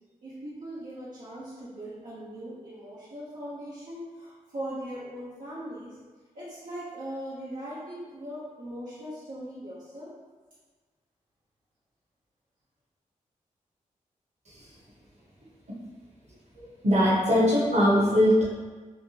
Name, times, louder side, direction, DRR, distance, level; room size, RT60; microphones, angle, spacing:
voice 1, 0.2-6.0 6.3-10.1, right 1 dB, 65° right, -11 dB, 0.9 m, -39 dB
voice 2, 16.6-18.4, equal, 50° right, -6 dB, 1.2 m, -21 dB
3.4 x 2.2 x 2.8 m, 1.3 s
cardioid pair, 45°, 14 cm